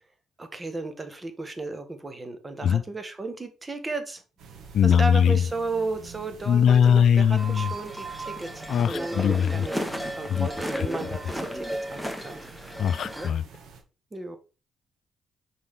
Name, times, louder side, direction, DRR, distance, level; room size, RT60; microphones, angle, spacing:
voice 1, 0.4-4.2 4.8-9.9 10.2-12.5 14.1-14.4, right 3 dB, 20° right, 1.5 m, -34 dB
sound 1, 4.4-13.8, right 4 dB, 75° right, 1.8 m, -47 dB
voice 2, 4.7-5.4 6.5-7.7 8.7-9.7 10.3-10.5 10.8-10.9 12.8-13.4, left 8 dB, 65° left, 0.3 m, -20 dB
sound 2, 7.4-13.3, right 1 dB, ahead, 1.1 m, -34 dB
6.5 x 5.0 x 3.7 m
cardioid pair, 90°, 0 cm